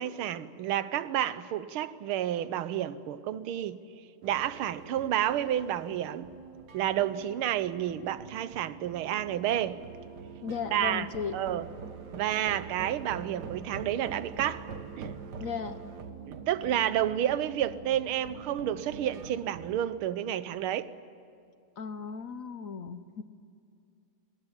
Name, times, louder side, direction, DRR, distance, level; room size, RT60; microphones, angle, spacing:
voice 1, 0.0-3.8 4.2-6.3 6.7-9.8 10.7-11.1 11.3-11.7 12.1-14.7 15.0-15.2 16.3-20.9, right 11 dB, 90° right, 15 dB, 1.7 m, -30 dB
sound 1, 4.2-19.8, right 6 dB, 55° right, 1.8 m, -44 dB
voice 2, 10.4-11.4 15.4-15.8 21.8-23.2, left 6 dB, 60° left, 11 dB, 0.9 m, -36 dB
25.0 x 21.0 x 9.9 m, 2.5 s
omnidirectional pair, 2.3 m